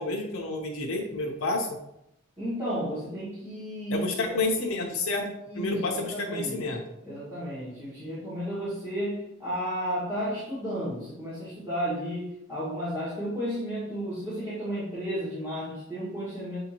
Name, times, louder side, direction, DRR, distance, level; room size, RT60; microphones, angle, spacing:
voice 1, 0.0-1.7 3.9-5.3 5.6-6.8, left 2 dB, 85° left, 1 dB, 0.7 m, -29 dB
voice 2, 2.4-4.4 5.5-6.6 7.0-16.6, equal, 15° right, -12 dB, 1.6 m, -33 dB
6.7 x 2.7 x 2.9 m, 0.82 s
head